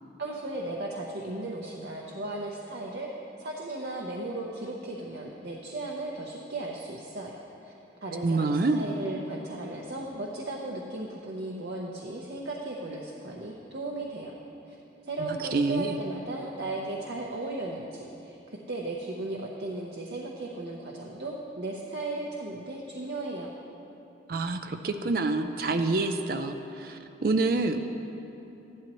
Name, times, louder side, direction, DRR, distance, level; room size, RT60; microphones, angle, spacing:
voice 1, 0.2-3.1 3.4-7.7 8.0-14.4 14.7-14.8 15.0-18.4 18.7-23.5, right 2 dB, 70° right, -2 dB, 0.8 m, -36 dB
voice 2, 8.2-8.8 15.2-16.0 24.3-27.9, right 3 dB, 50° right, 6 dB, 0.4 m, -27 dB
14.5 x 12.0 x 3.1 m, 3.0 s
head